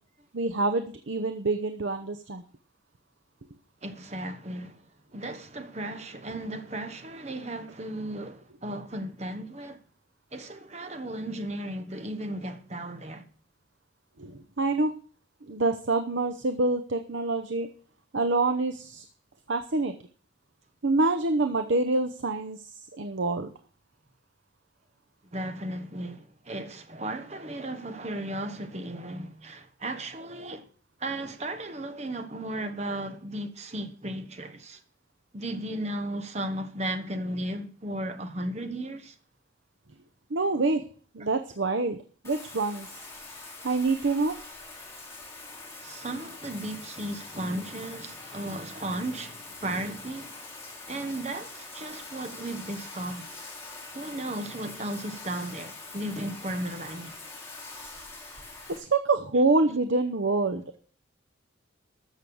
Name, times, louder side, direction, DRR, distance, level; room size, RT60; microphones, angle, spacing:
voice 1, 0.3-2.4 14.2-14.9 15.5-17.7 18.1-19.0 19.5-19.9 20.8-23.5 40.3-40.8 41.1-42.0 42.2-42.9 43.6-44.4 58.7-60.8, right 3 dB, 65° right, 0.8 m, -26 dB
voice 2, 3.8-4.8 5.1-9.8 10.3-13.2 25.3-30.6 31.0-34.8 35.3-39.1 45.8-50.3 50.9-53.3 53.9-57.1, right 1 dB, 35° right, 1.1 m, -35 dB
Bathtub (filling or washing), 42.2-58.8, left 3 dB, 15° left, 3.1 m, -44 dB
13.5 x 6.4 x 7.0 m
head